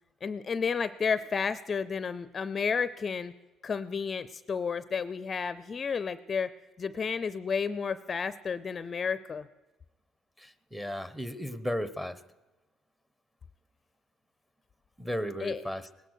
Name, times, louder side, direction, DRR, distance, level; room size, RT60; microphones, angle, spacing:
voice 1, 0.2-3.3 3.6-6.5 6.8-9.5 15.4-15.6, left 6 dB, 35° left, 15 dB, 0.5 m, -31 dB
voice 2, 10.4-12.2 15.0-15.9, equal, 5° right, 14 dB, 0.9 m, -35 dB
19.5 x 11.0 x 6.4 m, 1.1 s
cardioid pair, 105°, 0 cm